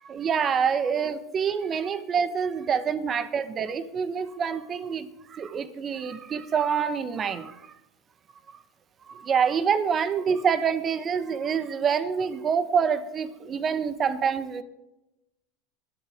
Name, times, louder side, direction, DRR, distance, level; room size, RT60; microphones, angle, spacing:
voice 1, 0.1-7.6 9.1-14.6, right 7 dB, 35° right, 12 dB, 1.2 m, -26 dB
25.0 x 8.4 x 3.6 m, 0.94 s
hypercardioid pair, 95°, 0 cm